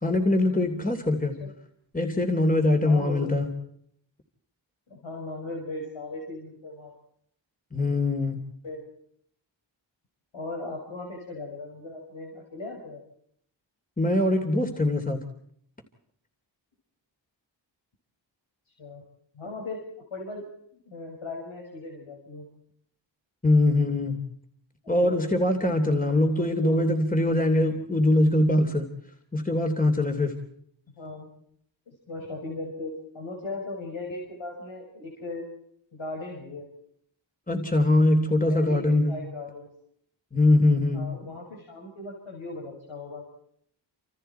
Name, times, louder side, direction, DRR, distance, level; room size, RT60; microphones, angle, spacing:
voice 1, 0.0-1.3 1.9-3.5 7.7-8.4 14.0-15.2 23.4-24.2 24.9-28.9 29.3-30.4 37.5-39.1 40.3-41.1, left 1 dB, 20° left, 4 dB, 3.0 m, -22 dB
voice 2, 2.8-3.5 4.9-6.9 8.6-8.8 10.3-13.0 18.8-19.0 19.3-19.8 20.1-20.4 20.9-22.5 24.8-25.2 26.3-26.9 31.0-31.3 31.9-35.5 35.9-36.7 38.4-39.7 40.9-43.2, left 2 dB, 85° left, 0 dB, 6.1 m, -38 dB
29.5 x 27.0 x 4.5 m, 0.68 s
wide cardioid pair, 90°, 46 cm